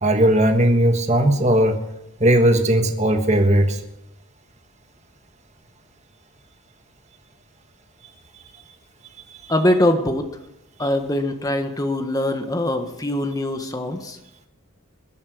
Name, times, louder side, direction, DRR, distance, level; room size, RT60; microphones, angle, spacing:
voice 1, 0.0-1.8 2.2-3.8, right 1 dB, 30° right, 5 dB, 1.5 m, -17 dB
voice 2, 9.5-10.2 10.8-14.2, left 1 dB, 15° left, 6 dB, 1.4 m, -22 dB
21.0 x 8.8 x 6.3 m, 0.90 s
head